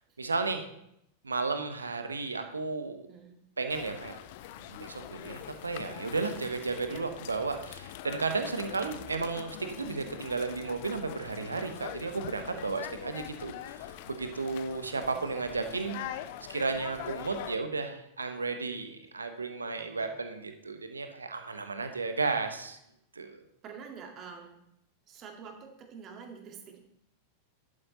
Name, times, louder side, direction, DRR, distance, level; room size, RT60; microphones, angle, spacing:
voice 1, 0.2-0.6 1.2-3.1 3.6-4.2 4.6-16.0 16.5-22.8 23.1-23.3, right 4 dB, 75° right, 7 dB, 1.1 m, -33 dB
voice 2, 3.1-3.4 6.9-7.1 8.1-8.2 19.8-20.1 23.6-24.6 25.1-26.8, right 6 dB, 30° right, 3 dB, 2.1 m, -47 dB
sound 1, 3.7-17.6, left 12 dB, 50° left, 0.6 m, -43 dB
11.5 x 9.0 x 4.1 m, 0.76 s
figure-of-eight pair, 90°, 0 cm